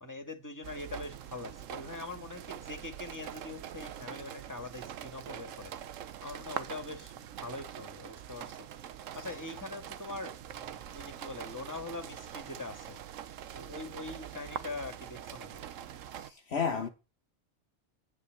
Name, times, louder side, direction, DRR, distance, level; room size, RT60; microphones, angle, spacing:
voice 1, 0.0-5.7 6.2-8.7 9.2-13.0 13.5-15.6, left 2 dB, 15° left, 2.0 m, -43 dB
sound 1, 0.6-16.3, right 10 dB, 80° right, 1.1 m, -44 dB
voice 2, 16.2-16.9, left 6 dB, 60° left, 1.2 m, -32 dB
9.7 x 5.6 x 7.8 m
omnidirectional pair, 1.3 m